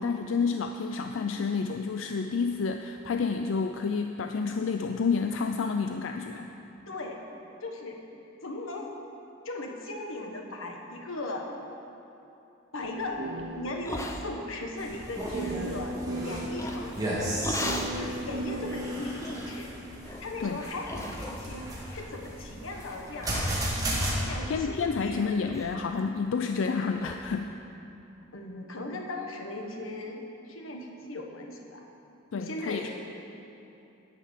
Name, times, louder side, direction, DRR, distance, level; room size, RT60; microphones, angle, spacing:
voice 1, 0.0-6.5 20.4-20.6 24.5-27.5 32.3-32.9, left 5 dB, 70° left, 5 dB, 0.4 m, -29 dB
voice 2, 6.9-7.2 7.6-8.0 8.4-8.9 9.4-11.5 12.7-13.3 13.5-17.0 18.0-19.7 20.2-23.4 23.9-25.5 28.3-31.8 32.3-32.9, left 2 dB, 90° left, 1 dB, 1.3 m, -38 dB
sound 1, 12.8-14.1 14.4-14.5 15.3-16.6 17.6-19.6, right 2 dB, 85° right, 1.0 m, -36 dB
sound 2, 13.8-14.6 15.0-15.5 16.6-17.0 17.4-18.0 18.5-18.6 19.2-19.6 20.0-20.3 20.9-21.6 21.9-22.4 22.8-23.0 23.2-25.1 25.4-25.7 26.0-26.1 26.5-26.6 27.0-27.2, left 1 dB, 15° left, 0.6 m, -38 dB
sound 3, 14.8-24.1, right 1 dB, 20° right, 1.8 m, -35 dB
11.0 x 6.0 x 8.1 m, 2.8 s
head